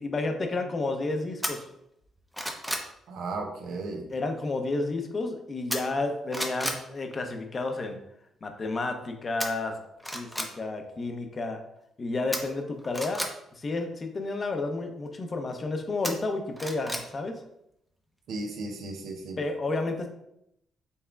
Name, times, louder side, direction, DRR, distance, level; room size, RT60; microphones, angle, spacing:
voice 1, 0.0-1.6 4.1-8.0 8.4-9.8 10.1-11.6 12.0-13.2 13.5-17.3 19.4-20.1, left 3 dB, 35° left, 5 dB, 0.7 m, -31 dB
sound 1, 1.4-1.5 2.0-2.9 5.7-6.1 6.3-6.8 9.4-9.5 10.0-10.5 12.3-13.3 16.0-17.1 17.4-17.5, equal, ahead, 0.7 m, -32 dB
voice 2, 3.1-4.1 18.3-19.4, right 3 dB, 75° right, 4 dB, 0.8 m, -35 dB
5.5 x 3.5 x 2.3 m, 0.79 s
cardioid pair, 90°, 0 cm